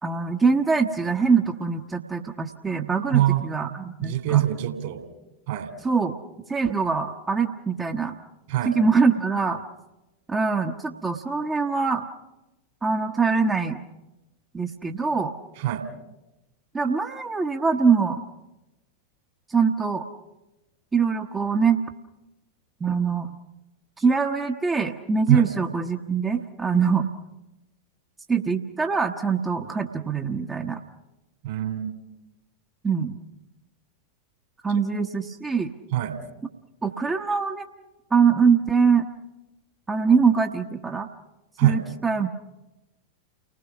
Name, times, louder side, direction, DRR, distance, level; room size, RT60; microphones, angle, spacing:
voice 1, 0.0-4.4 5.8-6.1 6.5-8.2 8.6-9.6 10.3-12.0 12.8-13.8 14.5-15.3 16.7-18.2 19.5-20.0 20.9-21.8 22.8-23.3 24.0-27.1 28.3-30.8 32.8-33.2 34.6-35.7 36.8-37.7 38.1-39.1 39.9-41.1 41.6-42.3, right 5 dB, 15° right, 4 dB, 1.0 m, -23 dB
voice 2, 3.1-3.5 4.0-5.0 5.5-5.7 8.5-8.7 15.6-15.8 25.3-25.5 31.4-32.0 35.9-36.2 41.6-41.8, right 13 dB, 50° right, 7 dB, 2.9 m, -23 dB
30.0 x 20.0 x 6.0 m, 1.0 s
figure-of-eight pair, 90°, 0 cm